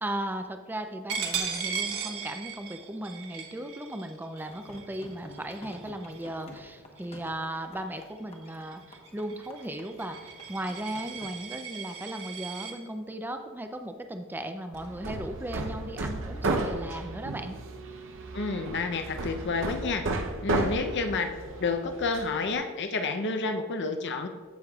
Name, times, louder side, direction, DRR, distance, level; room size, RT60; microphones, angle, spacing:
voice 1, 0.0-17.6, right 1 dB, 10° right, 6 dB, 0.4 m, -36 dB
Coin (dropping), 1.1-6.5 7.0-7.2 7.6-12.7, right 6 dB, 85° right, 1.2 m, -37 dB
sound 1, 4.4-11.3, left 1 dB, 25° left, 1.0 m, -50 dB
Hammer, 14.7-22.6, right 2 dB, 60° right, 0.7 m, -33 dB
voice 2, 18.3-20.0 20.4-21.3 21.6-24.3, left 3 dB, 50° left, 6 dB, 0.7 m, -29 dB
15.0 x 6.4 x 2.4 m, 1.5 s
head